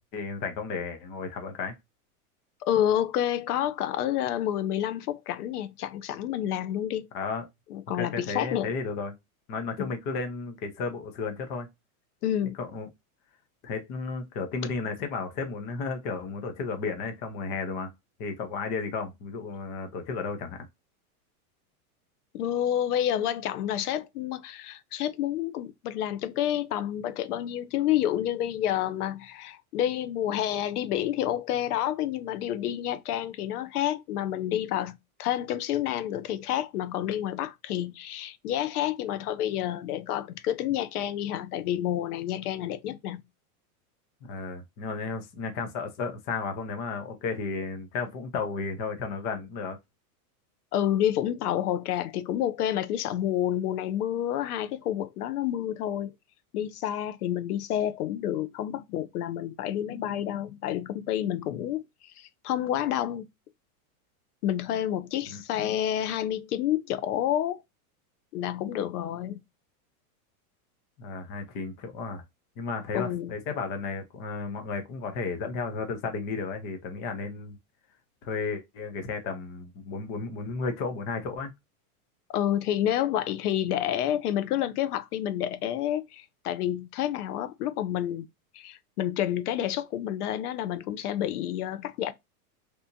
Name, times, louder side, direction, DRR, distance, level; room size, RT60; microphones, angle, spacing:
voice 1, 0.1-1.8 7.1-7.5 7.9-9.1 9.5-11.7 12.6-12.9 13.6-17.9 18.2-20.7 44.2-49.8 65.3-65.4 71.0-72.2 72.6-77.6 78.2-81.5, left 4 dB, 25° left, 0.4 m, -33 dB
voice 2, 2.6-7.1 7.7-8.7 12.2-12.6 22.3-43.2 50.7-56.1 56.5-63.3 64.4-67.6 68.3-69.4 72.9-73.3 82.3-88.3 88.5-92.1, left 11 dB, 90° left, 0.7 m, -29 dB
3.3 x 2.9 x 2.5 m
supercardioid pair, 160°, 44 cm